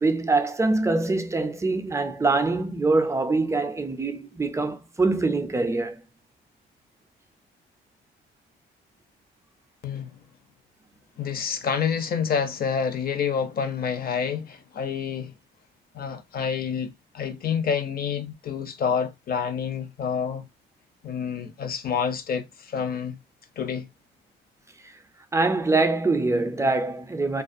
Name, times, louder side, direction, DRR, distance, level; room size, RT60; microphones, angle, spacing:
voice 1, 0.0-6.0 25.3-27.4, right 3 dB, 15° right, 0.4 m, -24 dB
voice 2, 9.8-10.2 11.2-15.3 15.9-20.5 21.0-23.2 23.6-23.9, left 7 dB, 50° left, 0.6 m, -28 dB
2.4 x 2.3 x 2.5 m
cardioid pair, 90°, 20 cm